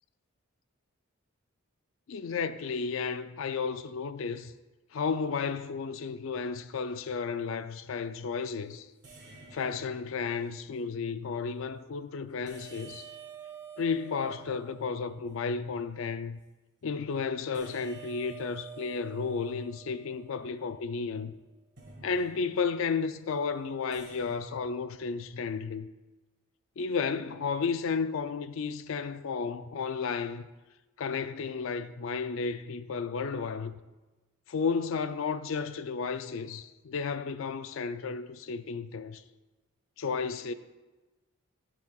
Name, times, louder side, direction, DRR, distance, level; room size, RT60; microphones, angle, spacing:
voice 1, 2.1-4.5 4.9-8.9 9.5-13.1 13.8-16.4 16.8-21.3 22.0-25.9 26.8-30.4 31.0-33.8 34.5-39.2 40.0-40.5, left 5 dB, 65° left, 0.4 m, -33 dB
sound 1, 7.3-7.6 9.0-10.5 12.5-15.5 17.5-20.9 21.8-22.8 23.9-24.4, right 6 dB, 50° right, 1.7 m, -49 dB
14.0 x 6.0 x 2.3 m
head